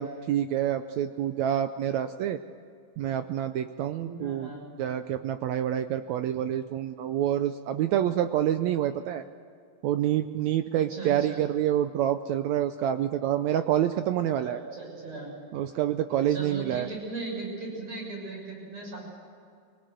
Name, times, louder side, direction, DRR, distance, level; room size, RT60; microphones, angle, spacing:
voice 1, 0.0-2.4 3.0-4.5 4.8-9.2 9.8-14.6 15.5-16.9, right 11 dB, 85° right, 9 dB, 1.6 m, -27 dB
voice 2, 4.0-4.7 10.9-11.4 14.4-15.3 16.3-19.0, right 3 dB, 50° right, -1 dB, 7.7 m, -38 dB
23.5 x 19.0 x 7.8 m, 2.3 s
omnidirectional pair, 3.9 m